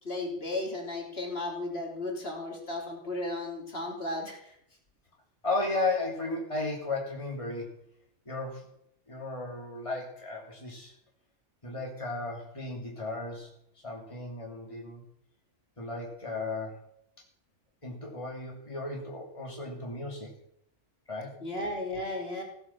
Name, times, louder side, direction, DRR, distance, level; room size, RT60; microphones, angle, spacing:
voice 1, 0.0-4.6 21.4-22.4, left 2 dB, 55° left, 0 dB, 3.6 m, -35 dB
voice 2, 5.4-7.8 8.3-8.6 9.1-10.9 11.6-13.5 13.8-15.0 15.8-16.8 17.8-20.3 21.1-21.4, left 2 dB, 25° left, -1 dB, 3.1 m, -34 dB
16.0 x 9.4 x 7.3 m, 0.71 s
omnidirectional pair, 1.2 m